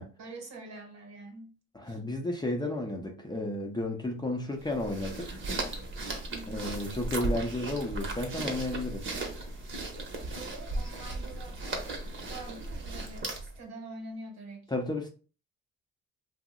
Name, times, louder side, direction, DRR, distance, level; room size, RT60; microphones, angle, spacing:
voice 1, 0.2-1.6 1.8-2.0 6.3-6.7 10.3-11.9 12.2-14.7, right 2 dB, 65° right, 1.0 m, -45 dB
voice 2, 1.7-5.3 6.5-9.1 14.7-15.1, left 2 dB, 15° left, 0.6 m, -33 dB
sound 1, 4.6-13.6, right 2 dB, 40° right, 0.9 m, -36 dB
2.6 x 2.0 x 3.6 m
cardioid pair, 90°, 30 cm